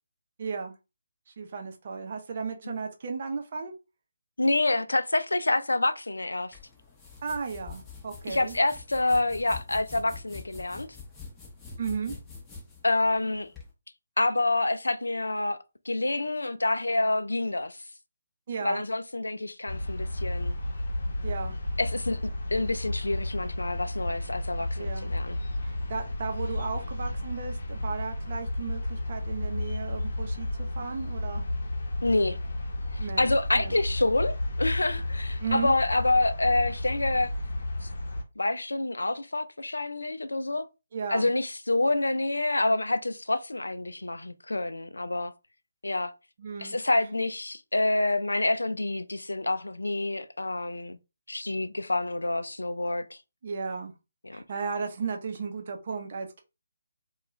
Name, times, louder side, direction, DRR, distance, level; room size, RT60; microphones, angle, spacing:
voice 1, 0.4-0.7 1.4-3.7 7.2-8.5 11.8-12.1 18.5-18.8 21.2-21.6 24.8-25.1 25.6-30.5 30.8-31.4 33.0-33.8 35.4-35.7 40.9-41.3 46.4-46.8 53.4-53.9 54.3-56.4, right 5 dB, 45° right, 0.6 m, -35 dB
voice 2, 4.4-6.6 8.3-10.9 12.8-13.5 14.2-15.6 15.9-17.8 18.6-20.6 21.8-25.4 32.0-32.4 32.9-37.3 37.8-37.9 38.4-40.7 41.1-45.3 45.8-46.1 46.6-51.0 51.3-53.2 54.2-54.4, left 2 dB, 85° left, 0.3 m, -27 dB
sound 1, 6.5-13.7, left 5 dB, 10° left, 0.7 m, -45 dB
sound 2, 19.7-38.2, left 1 dB, 65° left, 0.8 m, -32 dB
2.3 x 2.3 x 3.0 m
figure-of-eight pair, 150°, 0 cm